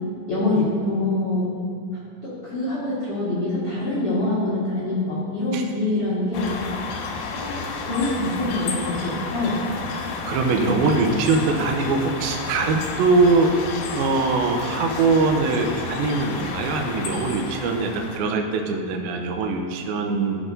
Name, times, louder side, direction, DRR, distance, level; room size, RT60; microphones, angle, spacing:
voice 1, 0.3-1.5 2.2-6.5 7.3-9.6 10.5-10.6, left 2 dB, 65° left, -10 dB, 1.4 m, -25 dB
sound 1, 6.3-18.2, left 4 dB, 90° left, 3.1 m, -31 dB
voice 2, 10.3-13.5 13.9-20.4, right 3 dB, 80° right, 2 dB, 2.2 m, -22 dB
13.5 x 6.2 x 2.6 m, 2.4 s
omnidirectional pair, 5.1 m